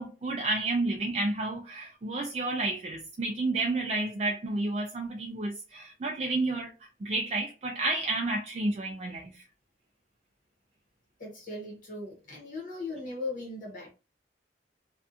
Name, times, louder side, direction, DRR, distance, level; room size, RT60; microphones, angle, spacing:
voice 1, 0.0-6.7 7.0-9.4, right 2 dB, 35° right, 0.3 m, -31 dB
voice 2, 11.2-13.9, left 2 dB, 45° left, 0.9 m, -38 dB
2.5 x 2.3 x 2.5 m
head